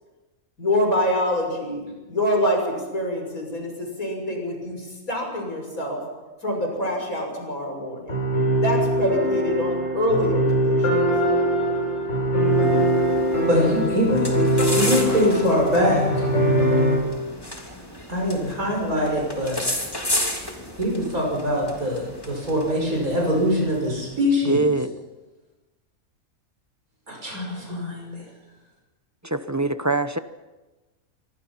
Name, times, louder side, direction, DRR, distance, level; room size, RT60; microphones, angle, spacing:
voice 1, 0.6-6.0 6.4-8.2 8.6-11.0, left 1 dB, 75° left, 2 dB, 7.1 m, -25 dB
sound 1, 8.1-17.0, equal, 60° left, 7.0 m, -22 dB
sound 2, 12.5-24.3, left 1 dB, 15° left, 3.2 m, -33 dB
voice 2, 13.5-14.3 14.7-16.2 18.1-19.6 20.8-24.6 27.1-28.2, equal, 80° right, -1 dB, 6.2 m, -23 dB
voice 3, 24.4-24.9 29.2-30.2, right 2 dB, 15° right, 10 dB, 0.7 m, -23 dB
27.0 x 24.0 x 5.8 m, 1.2 s
omnidirectional pair, 1.5 m